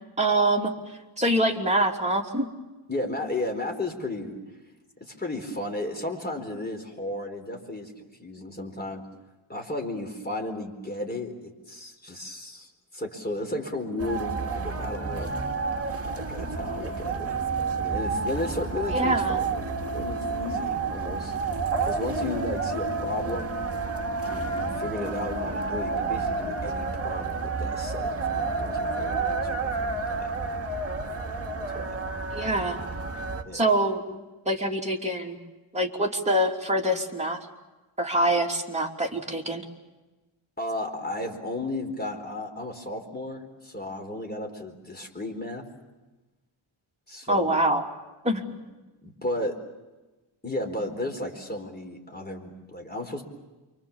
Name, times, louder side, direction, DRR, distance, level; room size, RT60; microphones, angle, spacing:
voice 1, 0.2-0.7 1.2-2.5 18.9-19.4 32.3-32.8 33.5-35.4 35.7-37.5 38.0-39.6 47.3-47.9 48.2-48.4, right 1 dB, 15° right, 0 dB, 3.0 m, -25 dB
voice 2, 2.9-4.4 5.0-9.0 9.5-15.5 16.0-17.3 17.8-21.4 21.8-23.6 24.2-30.3 31.7-31.9 33.4-33.6 40.6-45.7 47.1-47.6 49.0-49.6 50.4-53.2, left 1 dB, 20° left, 3 dB, 4.3 m, -34 dB
sound 1, 14.0-33.4, right 4 dB, 30° right, 2.1 m, -30 dB
29.0 x 24.5 x 7.3 m, 1.1 s
wide cardioid pair, 110°, 49 cm